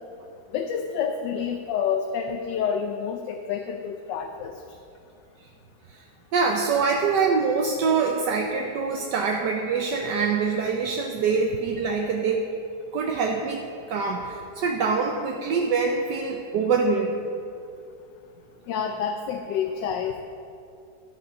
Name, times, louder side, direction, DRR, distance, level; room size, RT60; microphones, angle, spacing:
voice 1, 0.5-4.5 18.7-20.2, left 7 dB, 85° left, 5 dB, 1.3 m, -28 dB
voice 2, 6.3-12.5 12.9-13.6 13.9-17.2, right 5 dB, 75° right, 1 dB, 1.4 m, -24 dB
13.0 x 8.4 x 5.3 m, 2.5 s
omnidirectional pair, 1.9 m